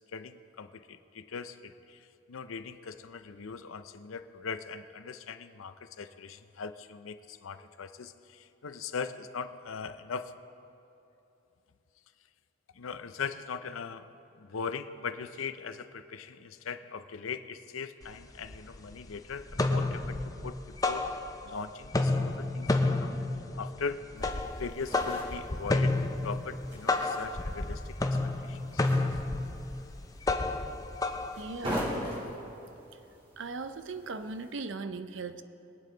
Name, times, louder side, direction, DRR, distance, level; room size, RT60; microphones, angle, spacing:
voice 1, 0.1-10.3 12.7-20.6 20.9-21.1 21.4-22.7 23.0-23.2 23.5-28.8, left 5 dB, 85° left, 11 dB, 0.6 m, -40 dB
sound 1, 18.0-18.1 18.5-19.1 19.4-21.6 21.8-32.0, left 2 dB, 15° left, 0.5 m, -31 dB
sound 2, 24.2-34.5, equal, 30° right, 3.1 m, -42 dB
voice 2, 31.4-32.0 33.4-35.4, right 3 dB, 65° right, 10 dB, 0.6 m, -38 dB
22.5 x 8.7 x 3.9 m, 2.9 s
head